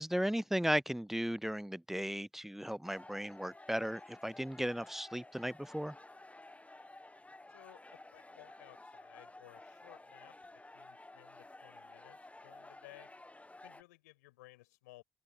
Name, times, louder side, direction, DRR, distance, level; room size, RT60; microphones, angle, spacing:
voice 1, 0.0-6.0, equal, 5° right, 0.3 m, -36 dB
sound 1, 2.8-13.8, left 2 dB, 15° left, 1.5 m, -54 dB
voice 2, 7.5-10.3 10.7-13.1 13.6-15.0, left 20 dB, 85° left, 6.8 m, -58 dB
open air
hypercardioid pair, 45°, 9 cm